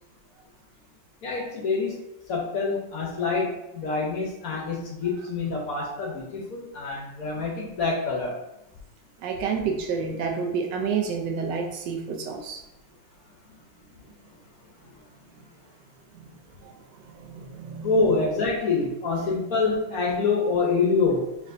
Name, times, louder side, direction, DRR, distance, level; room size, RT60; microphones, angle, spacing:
voice 1, 1.2-2.0 2.3-8.4 17.8-21.2, left 4 dB, 65° left, -2 dB, 1.0 m, -26 dB
voice 2, 9.2-12.6 16.1-16.3 16.6-16.7 17.1-17.9, right 5 dB, 80° right, 2 dB, 1.3 m, -29 dB
4.6 x 3.3 x 2.5 m, 0.88 s
omnidirectional pair, 2.0 m